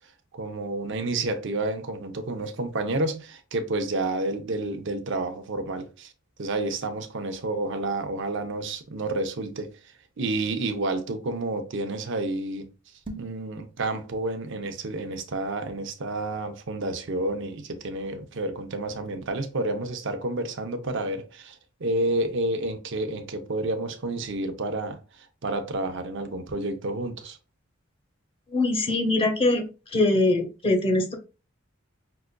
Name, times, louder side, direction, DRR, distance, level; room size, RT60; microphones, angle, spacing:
voice 1, 0.3-6.1 6.4-9.7 10.2-12.7 13.2-27.4, right 2 dB, 60° right, 0.6 m, -30 dB
sound 1, 12.9-13.5, right 2 dB, 25° right, 0.8 m, -39 dB
voice 2, 28.5-29.6 29.9-31.1, left 2 dB, 25° left, 0.8 m, -22 dB
5.5 x 2.5 x 2.2 m
head